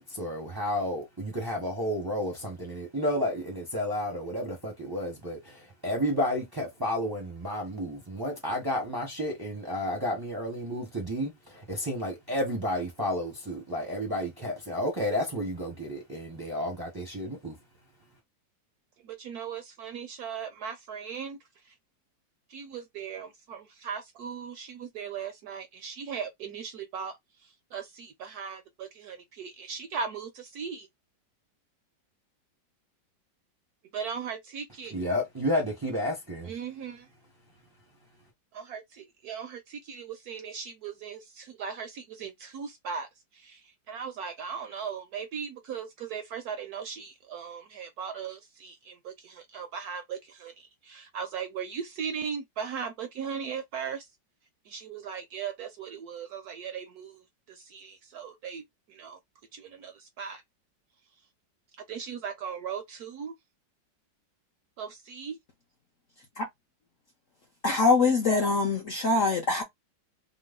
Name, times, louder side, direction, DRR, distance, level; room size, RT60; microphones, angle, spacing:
voice 1, 0.0-17.6 34.9-36.5, left 1 dB, 25° right, 0.5 m, -31 dB
voice 2, 19.0-21.4 21.6-21.7 22.5-27.2 27.4-30.9 33.9-34.9 36.4-37.1 38.5-54.1 54.6-58.6 58.9-59.2 59.5-60.4 61.9-63.3 64.8-65.4, right 6 dB, 70° right, 0.9 m, -38 dB
voice 3, 67.6-69.6, left 3 dB, 65° left, 0.8 m, -23 dB
3.0 x 2.0 x 3.5 m
omnidirectional pair, 2.0 m